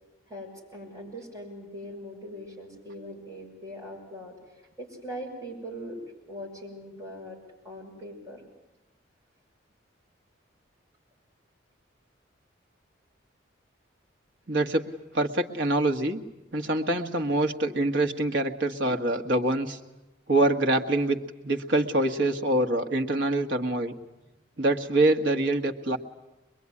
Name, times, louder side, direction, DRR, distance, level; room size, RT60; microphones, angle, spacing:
voice 1, 0.3-4.4 4.8-6.0 6.3-7.4 7.6-8.4, equal, 15° right, -4 dB, 7.1 m, -41 dB
voice 2, 14.5-14.9 15.1-16.2 16.5-19.8 20.3-21.2 21.4-23.9 24.6-26.0, right 2 dB, 65° right, 4 dB, 1.7 m, -25 dB
23.5 x 22.0 x 9.8 m, 1.0 s
head